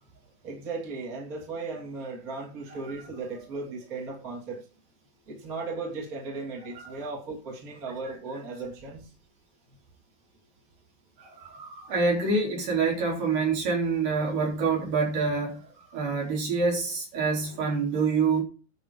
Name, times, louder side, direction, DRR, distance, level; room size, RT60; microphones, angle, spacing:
voice 1, 0.4-4.7 5.3-9.1 16.2-16.6 17.3-18.1, right 3 dB, 25° right, 2.8 m, -37 dB
voice 2, 11.2-15.7 15.9-18.4, right 4 dB, 55° right, 4.8 m, -26 dB
10.5 x 6.1 x 5.4 m
omnidirectional pair, 4.7 m